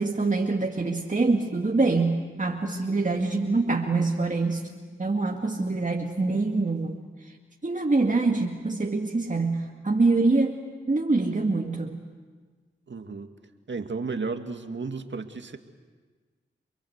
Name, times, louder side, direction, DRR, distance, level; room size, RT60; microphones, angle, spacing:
voice 1, 0.0-4.7 5.0-7.3 7.6-10.6 10.9-12.1, right 3 dB, 40° right, 1 dB, 2.1 m, -25 dB
voice 2, 12.9-13.3 13.7-15.6, right 4 dB, 60° right, 6 dB, 2.1 m, -33 dB
28.5 x 22.5 x 8.1 m, 1.4 s
cardioid pair, 45°, 21 cm